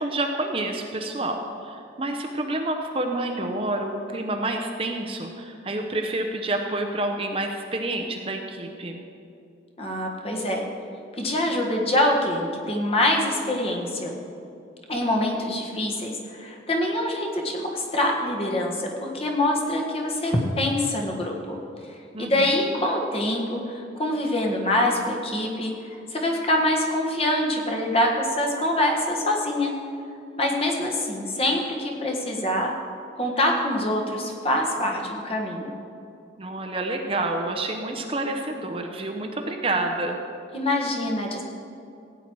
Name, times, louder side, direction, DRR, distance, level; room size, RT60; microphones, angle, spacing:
voice 1, 0.0-9.0 22.1-22.6 36.4-40.2, right 2 dB, 30° right, 3 dB, 0.7 m, -28 dB
voice 2, 9.8-10.6 11.2-14.1 14.9-21.3 22.2-29.7 30.4-32.7 33.2-35.8 40.5-41.4, left 1 dB, 30° left, 0 dB, 1.5 m, -25 dB
15.5 x 9.0 x 4.6 m, 2.5 s
head